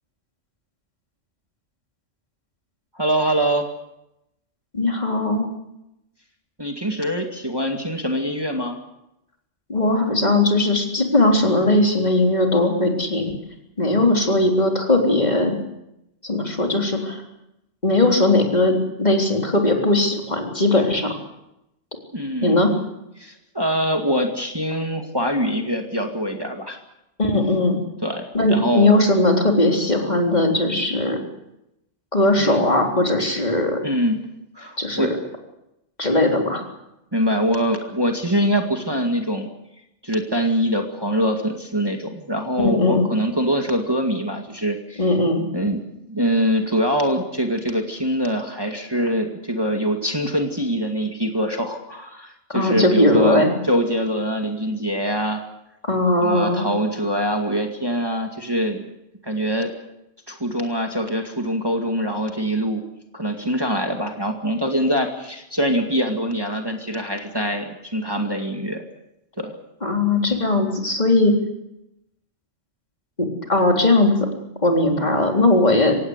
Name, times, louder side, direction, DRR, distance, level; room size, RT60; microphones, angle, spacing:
voice 1, 2.9-3.7 6.6-8.8 22.1-22.6 23.2-26.8 28.0-28.9 32.4-32.6 33.8-34.2 34.6-35.1 37.1-39.5 40.0-45.0 45.5-55.4 56.2-58.8 59.2-59.7 60.3-62.8 63.1-68.8 69.4-69.5, equal, 20° right, 3 dB, 2.3 m, -24 dB
voice 2, 4.7-5.5 9.7-13.3 13.8-15.6 16.2-17.2 17.8-21.1 22.4-22.7 27.2-27.8 28.3-31.2 32.1-33.8 34.8-35.2 36.0-36.6 42.6-43.1 45.0-45.4 52.5-53.5 55.8-56.7 69.8-71.3 73.2-74.1 74.6-76.0, left 2 dB, 35° left, 2 dB, 3.9 m, -19 dB
25.0 x 18.5 x 8.2 m, 0.87 s
omnidirectional pair, 1.2 m